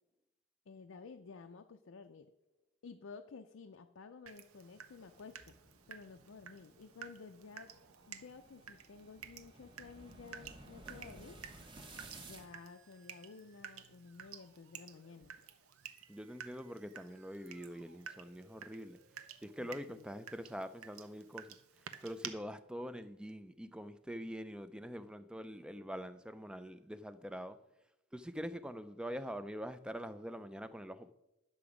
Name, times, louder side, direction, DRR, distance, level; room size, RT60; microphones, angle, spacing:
voice 1, 0.7-2.3 2.8-5.5 5.9-7.7 8.1-11.4 12.2-15.4 19.6-20.0, left 4 dB, 65° left, 0.5 m, -53 dB
Water tap faucet / Drip, 4.3-22.3, right 8 dB, 90° right, 0.7 m, -53 dB
sound 1, 4.9-12.5, right 2 dB, 20° right, 0.9 m, -56 dB
sound 2, 6.8-19.8, right 3 dB, 55° right, 1.3 m, -70 dB
voice 2, 16.1-19.0 19.4-27.6 28.1-31.1, equal, 5° right, 0.3 m, -44 dB
10.5 x 6.9 x 4.9 m
head